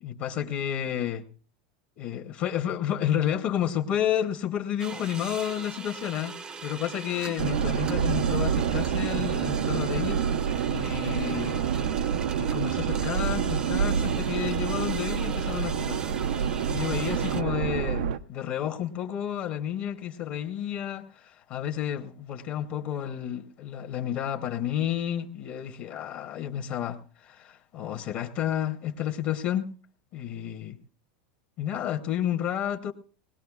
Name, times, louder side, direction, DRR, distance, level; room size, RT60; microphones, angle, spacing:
voice 1, 0.0-1.3 2.0-6.4 6.6-11.6 12.3-16.0 16.7-29.7 30.1-30.8 31.6-32.9, left 10 dB, 45° left, 0.9 m, -31 dB
sound 1, 4.8-17.4, right 4 dB, 20° right, 0.6 m, -40 dB
sound 2, 7.4-18.2, right 8 dB, 85° right, 0.5 m, -27 dB
21.0 x 19.0 x 2.4 m
supercardioid pair, 150°, 5 cm